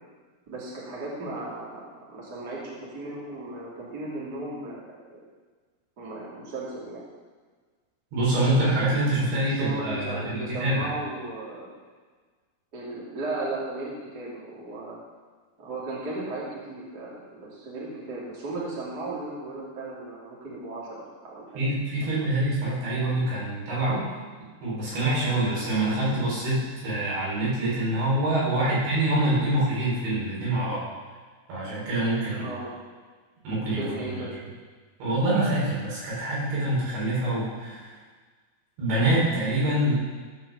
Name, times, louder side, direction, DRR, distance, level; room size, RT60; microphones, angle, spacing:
voice 1, 0.5-5.2 6.0-7.0 9.2-11.7 12.7-15.0 15.6-21.7 22.0-22.3 28.7-28.8 32.3-32.7 33.8-34.3, right 2 dB, 25° right, -6 dB, 2.7 m, -36 dB
voice 2, 8.1-10.9 21.6-24.1 24.6-30.8 31.5-32.5 33.4-33.9 34.1-34.2 35.0-37.9 38.8-40.0, right 1 dB, 80° right, -7 dB, 6.5 m, -25 dB
15.5 x 5.6 x 7.0 m, 1.4 s
omnidirectional pair, 5.2 m